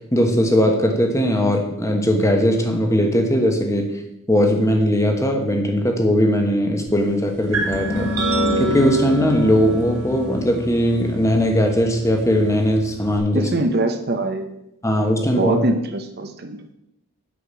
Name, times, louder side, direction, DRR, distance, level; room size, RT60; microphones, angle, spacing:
voice 1, 0.1-3.8 4.3-8.1 8.6-13.5 14.8-15.6, equal, 15° left, 3 dB, 1.2 m, -19 dB
sound 1, 7.5-13.2, equal, 80° right, 2.5 m, -26 dB
voice 2, 13.3-14.5 15.4-16.6, right 2 dB, 45° right, 6 dB, 0.7 m, -23 dB
8.6 x 5.8 x 7.0 m, 0.84 s
head